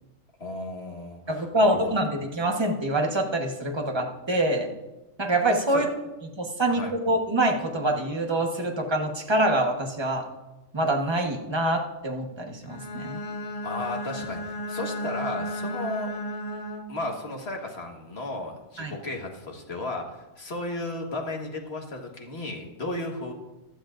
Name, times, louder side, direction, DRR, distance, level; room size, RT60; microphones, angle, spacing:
voice 1, 0.4-1.8 5.7-5.8 6.7-6.9 13.6-16.1 16.9-23.3, left 2 dB, 55° left, 1 dB, 1.8 m, -34 dB
voice 2, 1.3-4.7 5.2-5.8 6.4-10.2 10.7-13.2 18.8-18.9, right 1 dB, 20° right, 2 dB, 1.3 m, -25 dB
Bowed string instrument, 12.6-17.1, equal, 35° left, 0.7 m, -34 dB
15.0 x 12.5 x 2.6 m, 1.0 s
omnidirectional pair, 1.3 m